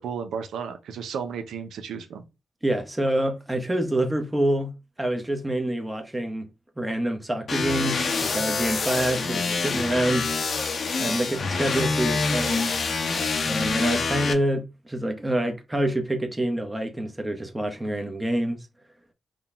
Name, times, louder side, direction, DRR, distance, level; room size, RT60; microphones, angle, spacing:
voice 1, 0.0-2.2, right 7 dB, 85° right, 0.6 m, -33 dB
voice 2, 2.6-4.7 5.0-6.5 6.8-10.3 11.0-12.7 13.5-18.6, right 1 dB, 15° right, 0.8 m, -26 dB
sound 1, 7.5-14.3, left 4 dB, 60° left, 0.8 m, -26 dB
3.8 x 2.3 x 3.4 m
supercardioid pair, 50°, 0 cm